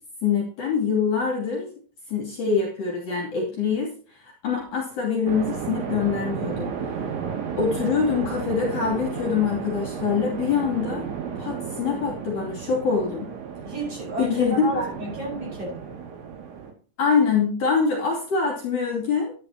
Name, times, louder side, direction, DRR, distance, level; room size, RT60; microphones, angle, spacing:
voice 1, 0.2-1.7 2.1-6.7 7.6-11.1 11.4-13.3 14.2-14.9 17.0-19.3, left 5 dB, 45° left, 0 dB, 3.7 m, -24 dB
sound 1, 5.3-16.7, right 6 dB, 75° right, 4.6 m, -33 dB
voice 2, 13.6-15.8, right 1 dB, 30° right, -2 dB, 6.4 m, -31 dB
11.5 x 11.5 x 2.9 m, 0.40 s
omnidirectional pair, 5.2 m